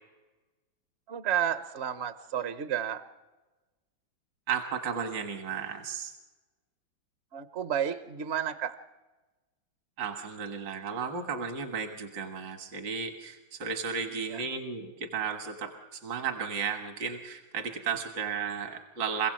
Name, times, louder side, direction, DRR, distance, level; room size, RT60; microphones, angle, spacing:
voice 1, 1.1-3.0 7.3-8.8 14.3-14.4, right 9 dB, 50° right, 10 dB, 0.8 m, -31 dB
voice 2, 4.5-6.2 10.0-19.3, right 6 dB, 70° right, 5 dB, 2.3 m, -34 dB
27.0 x 16.5 x 7.6 m, 1.2 s
omnidirectional pair, 2.1 m